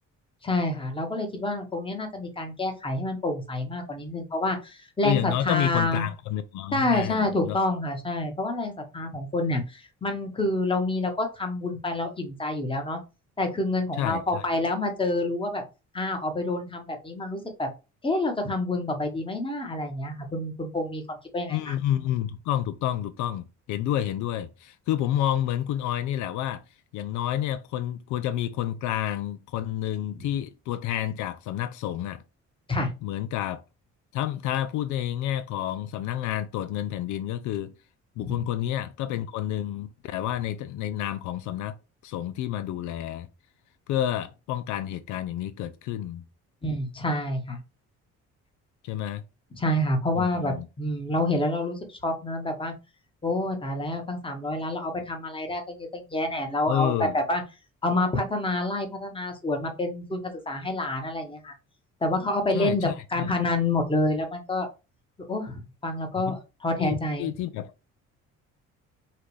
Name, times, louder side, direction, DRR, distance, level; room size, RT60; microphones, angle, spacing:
voice 1, 0.4-6.1 6.7-13.0 13.4-15.6 15.9-17.7 18.0-21.7 32.7-32.9 38.2-38.4 46.6-47.6 49.6-52.7 53.2-57.4 57.8-61.5 62.0-64.7 65.3-67.3, left 2 dB, 15° left, 1.2 m, -28 dB
voice 2, 5.0-7.6 13.9-14.5 21.5-26.6 26.9-32.2 33.0-33.6 34.1-37.7 38.2-41.8 42.0-43.3 43.9-46.2 48.8-49.2 50.1-50.7 56.7-57.1 62.5-63.3 66.2-66.4 66.8-67.7, left 11 dB, 80° left, 0.5 m, -29 dB
5.7 x 2.5 x 3.2 m
cardioid pair, 115°, 29 cm